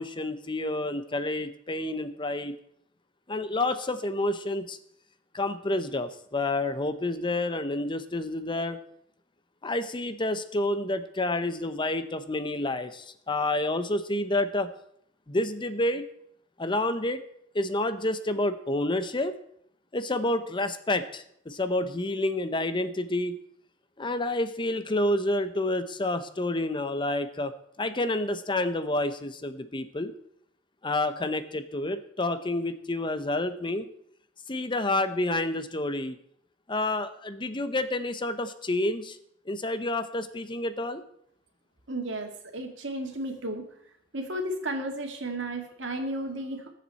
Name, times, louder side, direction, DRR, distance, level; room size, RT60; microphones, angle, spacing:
voice 1, 0.0-2.5 3.3-4.8 5.3-8.8 9.6-14.7 15.3-16.0 16.6-17.2 17.5-19.3 19.9-23.4 24.0-27.5 27.8-30.1 30.8-33.9 34.5-36.2 36.7-39.2 39.5-41.0, left 2 dB, 25° left, 11 dB, 0.8 m, -29 dB
voice 2, 41.9-43.7 44.1-46.7, right 1 dB, 75° right, 4 dB, 2.2 m, -33 dB
20.5 x 7.6 x 4.2 m, 0.70 s
head